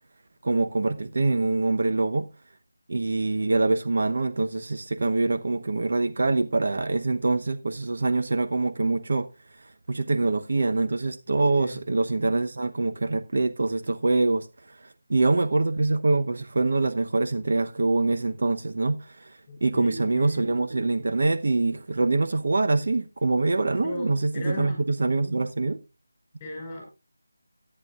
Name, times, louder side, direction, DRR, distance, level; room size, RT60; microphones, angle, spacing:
voice 1, 0.4-2.3 2.9-9.3 9.6-25.8, right 3 dB, 45° right, 0.9 m, -25 dB
voice 2, 11.5-11.8 19.5-20.6 23.8-24.8 26.4-26.8, left 2 dB, 10° left, 5.0 m, -37 dB
16.5 x 9.8 x 2.4 m
figure-of-eight pair, 175°, 0 cm